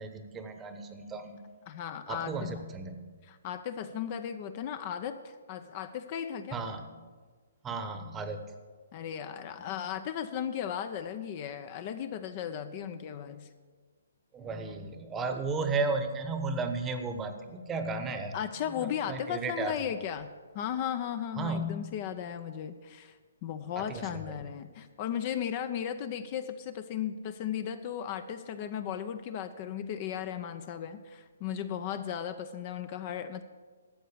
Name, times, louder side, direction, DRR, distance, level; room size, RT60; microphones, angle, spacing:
voice 1, 0.0-1.4 2.1-3.1 6.5-6.9 7.6-8.4 14.3-18.3 19.1-19.7 21.4-21.9 23.7-24.4, right 3 dB, 15° right, 8 dB, 1.0 m, -34 dB
voice 2, 1.7-2.5 3.2-6.6 8.9-13.5 18.3-23.2 23.4-33.4, left 9 dB, 35° left, 11 dB, 0.6 m, -36 dB
12.5 x 7.8 x 6.9 m, 1.5 s
hypercardioid pair, 145°, 0 cm